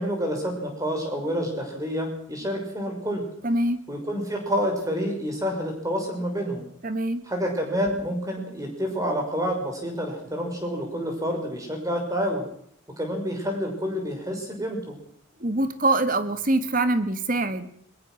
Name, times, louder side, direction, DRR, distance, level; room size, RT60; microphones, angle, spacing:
voice 1, 0.0-3.2 3.9-6.7 7.3-12.5 13.0-15.0, equal, 15° right, 2 dB, 5.9 m, -28 dB
voice 2, 3.4-3.8 6.8-7.2 15.4-17.7, right 2 dB, 40° right, 11 dB, 1.7 m, -24 dB
22.0 x 21.5 x 6.2 m, 0.65 s
head